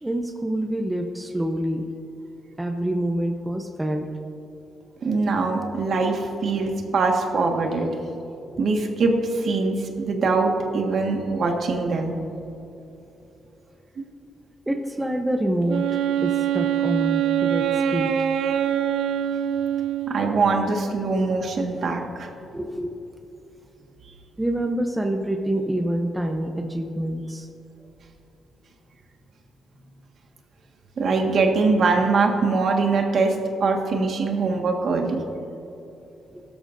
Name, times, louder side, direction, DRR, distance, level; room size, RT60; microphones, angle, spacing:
voice 1, 0.0-1.9 2.6-4.1 6.0-6.2 8.5-8.6 14.7-15.8 16.2-17.7 17.9-18.1 22.5-22.9 24.4-27.5, right 1 dB, 10° right, 4 dB, 0.7 m, -26 dB
voice 2, 5.0-7.9 8.6-12.2 20.1-22.3 31.0-35.2, right 3 dB, 60° right, 2 dB, 1.6 m, -22 dB
Wind instrument woodwind instrument, 15.7-20.5, right 10 dB, 85° right, 0.5 m, -24 dB
16.5 x 13.0 x 2.6 m, 2.8 s
cardioid pair, 110°, 0 cm